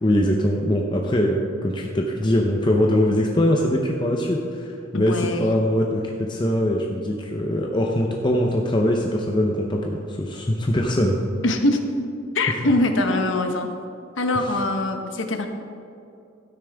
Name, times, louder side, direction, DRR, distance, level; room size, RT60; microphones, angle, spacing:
voice 1, 0.0-11.2 12.5-12.6 14.3-14.6, left 1 dB, 25° left, 0 dB, 0.6 m, -22 dB
voice 2, 4.9-5.4 11.4-11.8 12.3-13.7 14.2-15.5, left 2 dB, 85° left, 5 dB, 1.1 m, -22 dB
12.5 x 9.8 x 3.5 m, 2.5 s
head